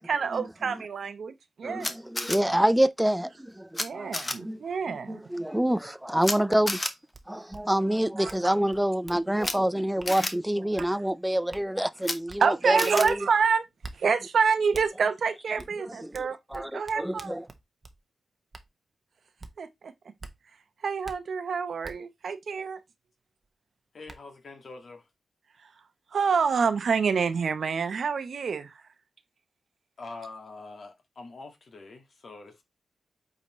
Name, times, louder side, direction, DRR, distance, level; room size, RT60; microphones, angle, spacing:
voice 1, 0.0-2.0 3.8-5.2 8.2-8.3 10.8-10.9 12.4-13.6 13.9-17.3 19.6-19.9 20.8-22.8 26.1-28.8, right 5 dB, 65° right, 0.9 m, -27 dB
voice 2, 1.6-4.6 4.9-6.8 7.3-13.2 15.9-17.5, right 1 dB, 5° right, 0.4 m, -27 dB
Camera, 1.8-2.4 3.7-3.8 4.1-4.3 6.2-6.4 6.7-6.9 9.4-9.5 10.1-10.3 12.0-12.2 12.8-13.1, left 2 dB, 20° left, 1.0 m, -30 dB
sound 1, 7.1-7.2 7.5-7.6 8.3-8.4 8.7-9.6 10.0-10.1 10.8-10.9 11.5-11.6 12.3-12.4 13.0-13.2 13.8-14.0 14.7-14.9 15.6-15.7 16.1-18.0 18.5-18.7 19.4-19.5 20.2-20.3 21.0-21.2 21.8-21.9 23.4-23.5 24.1-24.2, right 3 dB, 30° right, 1.0 m, -44 dB
voice 3, 23.9-25.1 30.0-32.6, left 3 dB, 55° left, 1.8 m, -44 dB
8.2 x 4.1 x 3.1 m
wide cardioid pair, 115°, 0 cm